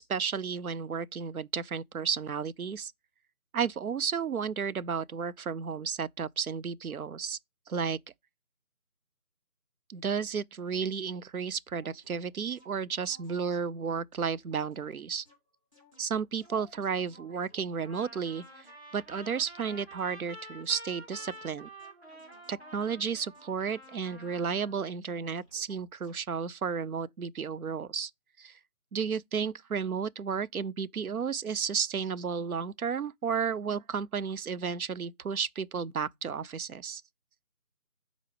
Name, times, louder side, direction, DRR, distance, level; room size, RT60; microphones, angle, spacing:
voice 1, 0.0-2.9 3.5-7.4 7.7-8.0 9.9-15.3 16.0-18.7 18.9-21.7 22.5-28.1 28.4-28.6 28.9-37.0, right 6 dB, 75° right, 0.5 m, -33 dB
sound 1, 11.7-13.7 14.6-19.1 20.0-24.5 25.4-25.7 26.0-26.3, left 1 dB, 20° right, 2.3 m, -61 dB
Trumpet, 17.8-24.9, right 1 dB, 45° right, 2.2 m, -49 dB
6.1 x 4.0 x 4.9 m
figure-of-eight pair, 165°, 44 cm